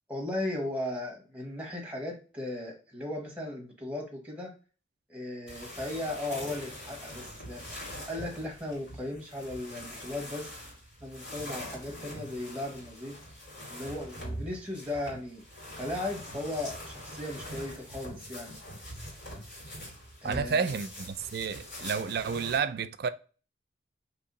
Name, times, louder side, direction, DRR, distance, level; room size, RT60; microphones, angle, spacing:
voice 1, 0.1-4.5 5.1-7.6 8.1-10.5 11.0-13.2 13.7-15.4 15.8-18.6 20.2-20.7, left 1 dB, 5° right, 1.1 m, -36 dB
sound 1, 5.5-22.6, equal, 70° left, 2.0 m, -43 dB
voice 2, 20.2-23.1, right 6 dB, 55° right, 0.3 m, -30 dB
2.9 x 2.7 x 3.8 m
head